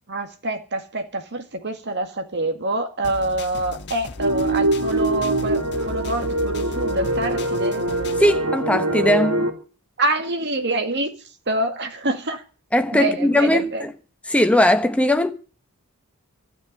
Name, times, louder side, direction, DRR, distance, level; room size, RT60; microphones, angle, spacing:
voice 1, 0.1-7.8 10.0-11.1 11.5-12.4 12.9-13.8, right 2 dB, 50° right, 2.1 m, -26 dB
sound 1, 3.0-8.4, left 2 dB, 50° left, 1.3 m, -36 dB
sound 2, 4.2-9.5, right 1 dB, 80° right, 2.9 m, -23 dB
voice 2, 8.2-9.5 12.7-13.9 14.3-15.3, left 1 dB, 5° left, 1.1 m, -19 dB
12.5 x 8.3 x 9.6 m
head